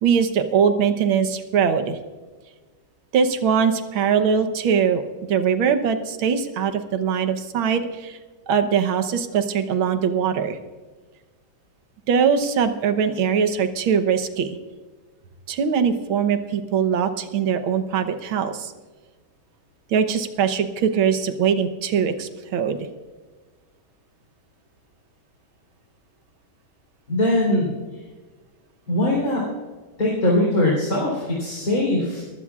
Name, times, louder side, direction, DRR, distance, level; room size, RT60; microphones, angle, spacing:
voice 1, 0.0-2.0 3.1-5.0 5.3-8.2 8.5-10.6 12.1-14.6 15.5-18.7 19.9-22.8, right 7 dB, 85° right, 8 dB, 1.8 m, -21 dB
voice 2, 27.1-27.7 28.9-29.4 30.0-32.2, left 1 dB, 45° left, -4 dB, 4.3 m, -21 dB
21.5 x 15.5 x 2.4 m, 1.3 s
omnidirectional pair, 2.2 m